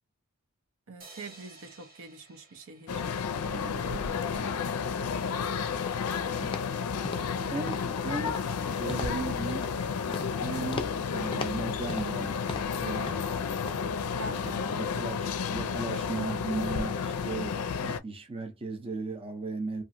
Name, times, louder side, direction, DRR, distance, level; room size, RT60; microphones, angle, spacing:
voice 1, 0.9-3.0 3.5-3.8 5.0-5.3 7.0-7.7 14.2-14.6, right 2 dB, 65° right, 0.6 m, -45 dB
sound 1, 1.0-4.3, right 2 dB, 40° right, 0.9 m, -54 dB
sound 2, 2.9-18.0, left 6 dB, 85° left, 0.4 m, -31 dB
voice 2, 3.5-4.5 7.5-8.4 8.8-9.7 10.4-12.4 12.7-13.2 14.2-19.8, right 3 dB, 25° right, 0.5 m, -36 dB
sound 3, 5.8-6.1 6.4-6.7 7.0-7.4 7.7-7.9 8.3-8.6 8.9-9.2 9.5-9.8 10.1-10.4 10.7-11.0 11.3-12.2 12.5-12.8 13.1-13.4 13.7-13.8, left 3 dB, 25° left, 0.4 m, -39 dB
2.9 x 2.5 x 2.5 m
head